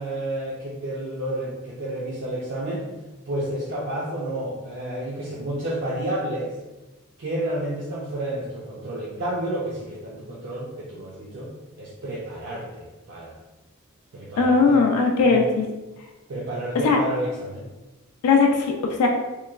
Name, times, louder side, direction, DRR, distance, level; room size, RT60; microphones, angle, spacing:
voice 1, 0.0-2.9 3.3-6.5 7.2-13.4 14.1-14.9 15.2-15.5 16.3-17.7, right 1 dB, 55° right, -5 dB, 0.4 m, -30 dB
voice 2, 14.4-15.4 16.8-17.0 18.2-18.7 19.0-19.1, left 4 dB, 85° left, 1 dB, 0.4 m, -18 dB
3.0 x 2.2 x 2.3 m, 1.1 s
head